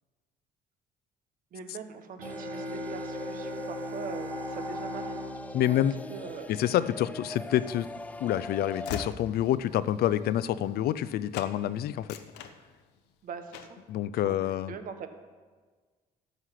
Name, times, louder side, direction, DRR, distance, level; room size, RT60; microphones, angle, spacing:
voice 1, 1.5-5.2 5.7-5.8 6.1-6.5 13.2-13.8 14.2-15.1, right 6 dB, 55° right, 7 dB, 1.3 m, -42 dB
sound 1, 2.2-9.1, left 2 dB, 10° left, 0.4 m, -41 dB
sound 2, 2.2-6.9, equal, 80° right, 1.8 m, -40 dB
voice 2, 5.5-5.9 6.5-7.9 8.2-12.1 13.9-14.7, left 12 dB, 65° left, 15 dB, 0.6 m, -27 dB
Train / Slam, 7.4-11.1 11.3-11.6 11.9-13.1 13.5-13.9, left 8 dB, 90° left, 0.9 m, -43 dB
13.0 x 8.2 x 5.9 m, 1.4 s
cardioid pair, 110°, 17 cm